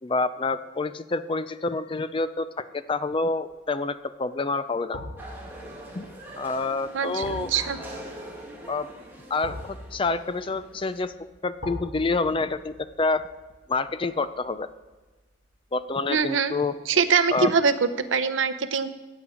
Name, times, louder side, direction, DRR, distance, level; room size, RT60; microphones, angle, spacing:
voice 1, 0.0-5.0 5.9-6.0 6.4-7.5 8.7-8.9 9.3-11.1 11.4-13.3 13.7-14.7 15.7-16.7 17.3-17.5, left 3 dB, 25° left, 13 dB, 0.4 m, -27 dB
sound 1, 3.1-3.5 4.9-15.9 16.3-16.4, left 1 dB, 65° left, 2.3 m, -43 dB
sound 2, 5.2-11.0, right 1 dB, 10° right, 2.2 m, -43 dB
voice 2, 6.9-7.8 16.1-16.5 16.9-18.9, right 5 dB, 75° right, 12 dB, 0.7 m, -23 dB
15.5 x 8.4 x 5.0 m, 1.2 s
head